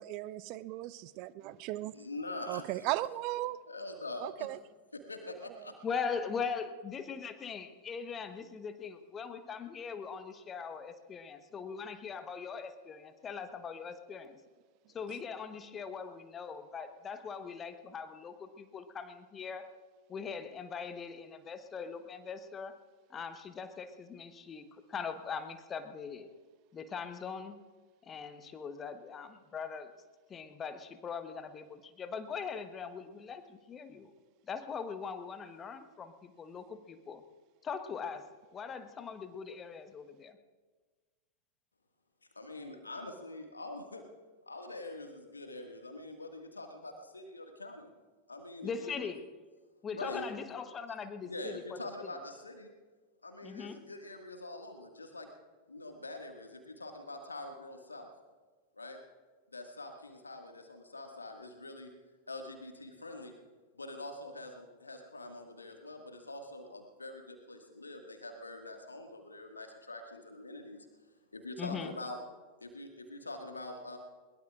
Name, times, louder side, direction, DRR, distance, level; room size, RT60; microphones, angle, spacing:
voice 1, 0.0-2.0 2.5-3.6 4.2-4.6 5.6-5.7 15.1-15.2, right 16 dB, 45° right, 0.5 m, -37 dB
voice 2, 1.9-2.6 3.7-4.5 5.1-5.7 42.3-44.0 44.5-47.9 48.3-48.9 49.9-50.3 51.2-52.7 53.2-55.3 55.7-58.1 58.7-59.0 59.5-61.9 62.3-63.3 63.7-70.9 71.3-72.2 72.6-74.0, left 2 dB, 80° left, 1.9 m, -44 dB
voice 3, 5.8-14.4 14.9-19.7 20.1-22.7 23.1-26.3 26.7-27.6 28.1-29.9 30.3-34.1 34.5-37.2 37.6-40.4 48.6-49.2 49.8-51.6 53.4-53.8 71.6-71.9, left 6 dB, 25° left, 1.1 m, -41 dB
21.5 x 21.0 x 2.5 m
figure-of-eight pair, 90°, 0 cm